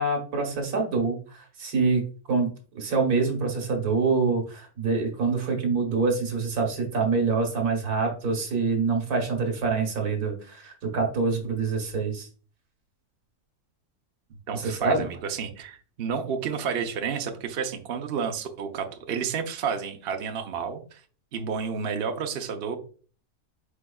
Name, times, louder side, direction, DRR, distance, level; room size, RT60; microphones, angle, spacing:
voice 1, 0.0-2.0 2.3-12.3 14.5-15.1, right 4 dB, 70° right, 2 dB, 1.7 m, -26 dB
voice 2, 14.5-21.0 21.3-22.8, right 6 dB, 55° right, 5 dB, 0.7 m, -31 dB
4.8 x 4.4 x 2.3 m, 0.39 s
omnidirectional pair, 1.7 m